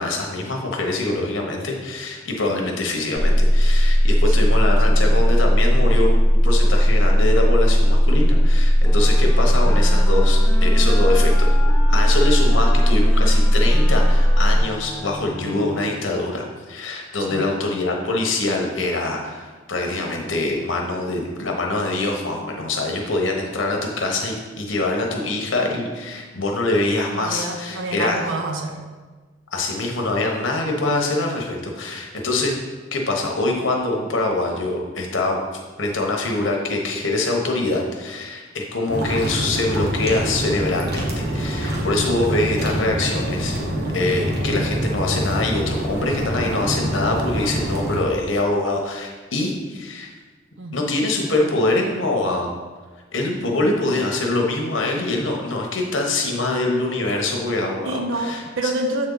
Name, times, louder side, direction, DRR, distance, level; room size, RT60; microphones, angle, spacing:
voice 1, 0.0-11.6 11.9-28.2 29.5-32.5 32.9-35.4 35.8-43.6 43.9-50.1 50.7-52.5 53.1-58.4, left 2 dB, 70° left, 1 dB, 1.1 m, -24 dB
sound 1, 3.1-14.6, equal, 10° right, 1.5 m, -16 dB
voice 2, 4.8-5.2 17.3-17.5 27.1-28.9 50.6-51.0 57.8-59.1, right 2 dB, 75° right, 4 dB, 0.7 m, -28 dB
sound 2, 8.8-16.3, left 1 dB, 10° left, 0.5 m, -34 dB
sound 3, 38.9-48.0, equal, 55° right, 1.2 m, -25 dB
7.5 x 4.3 x 4.0 m, 1.4 s
head